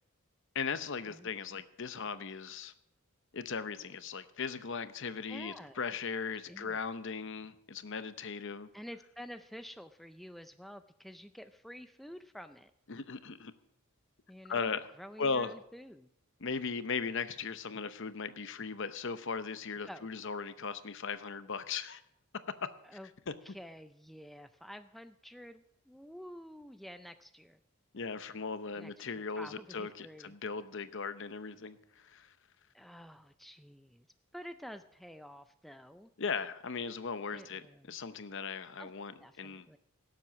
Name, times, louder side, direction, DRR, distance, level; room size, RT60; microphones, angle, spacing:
voice 1, 0.5-2.7 3.3-8.7 12.9-13.5 14.5-14.8 15.2-15.5 16.4-22.0 22.6-22.7 23.3-23.4 27.9-32.3 36.2-39.7, left 5 dB, 55° left, 12 dB, 0.7 m, -38 dB
voice 2, 5.3-5.8 6.5-6.8 8.7-12.7 14.3-16.1 19.9-20.1 22.8-23.1 23.4-27.6 28.8-30.3 32.7-34.1 34.3-36.1 37.3-37.9 38.8-38.9 39.2-39.8, equal, ahead, 9 dB, 0.4 m, -49 dB
17.5 x 7.6 x 6.1 m, 0.75 s
head